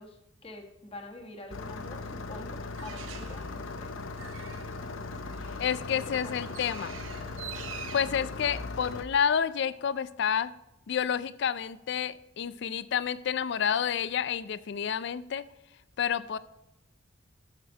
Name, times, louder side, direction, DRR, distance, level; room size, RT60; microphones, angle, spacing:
voice 1, 0.0-3.9 5.7-6.5, left 2 dB, 30° left, 1 dB, 1.3 m, -46 dB
Engine starting, 1.5-9.0, left 3 dB, 90° left, 0.8 m, -39 dB
Bird, 2.7-9.2, right 8 dB, 85° right, 0.7 m, -47 dB
voice 2, 5.6-7.0 7.9-10.5 10.9-15.4 16.0-16.4, left 8 dB, 60° left, 15 dB, 0.4 m, -29 dB
7.9 x 6.7 x 4.7 m, 0.93 s
head